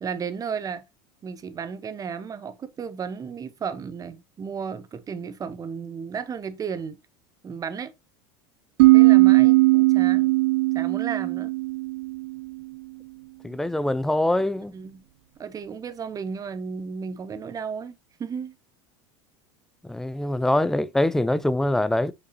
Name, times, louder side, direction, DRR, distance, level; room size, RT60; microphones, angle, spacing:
voice 1, 0.0-0.8 1.2-7.0 7.4-7.9 8.9-10.3 10.7-11.5 14.7-15.0 15.4-18.6, right 6 dB, 25° right, 0.9 m, -34 dB
sound 1, 8.8-12.4, right 22 dB, 75° right, 0.4 m, -18 dB
voice 2, 13.4-14.7 19.8-22.1, left 1 dB, 5° left, 0.4 m, -24 dB
6.4 x 5.5 x 2.7 m
supercardioid pair, 110°, 13 cm